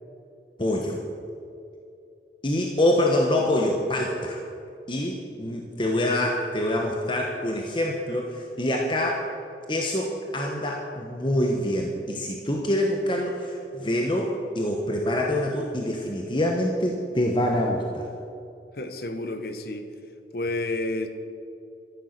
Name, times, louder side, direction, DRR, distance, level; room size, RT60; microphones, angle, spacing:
voice 1, 0.6-1.0 2.4-4.4 4.9-9.3 9.7-18.1, left 1 dB, 30° left, 0 dB, 1.2 m, -25 dB
voice 2, 18.7-19.9 20.3-21.1, left 2 dB, 60° left, 8 dB, 1.2 m, -30 dB
13.5 x 11.5 x 6.7 m, 2.7 s
head